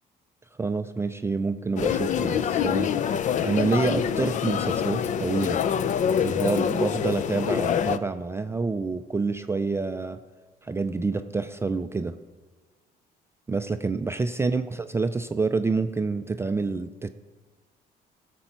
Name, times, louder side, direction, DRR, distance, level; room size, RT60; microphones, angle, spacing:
voice 1, 0.6-5.6 6.2-10.2 10.6-12.2 13.5-17.1, right 4 dB, 15° right, 9 dB, 0.4 m, -28 dB
sound 1, 1.8-8.0, left 8 dB, 45° left, 0.5 m, -25 dB
16.0 x 6.9 x 4.5 m, 1.4 s
cardioid pair, 110°, 17 cm